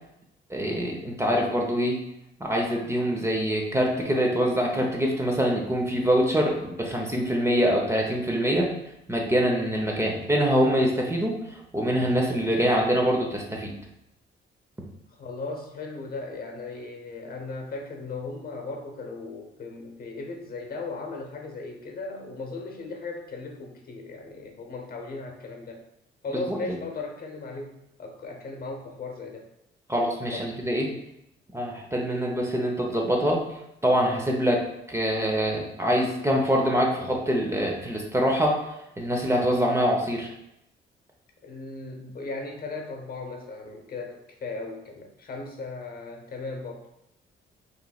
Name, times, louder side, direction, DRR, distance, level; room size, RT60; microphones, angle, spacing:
voice 1, 0.5-2.0 2.4-8.7 9.1-13.7 26.3-26.8 29.9-30.9 31.5-33.4 33.8-38.6 39.0-40.3, equal, 15° right, 0 dB, 0.8 m, -24 dB
voice 2, 15.1-25.8 26.2-29.5 30.3-30.6 41.4-46.9, left 3 dB, 50° left, 3 dB, 0.9 m, -37 dB
5.6 x 3.2 x 2.3 m, 0.83 s
cardioid pair, 90°, 20 cm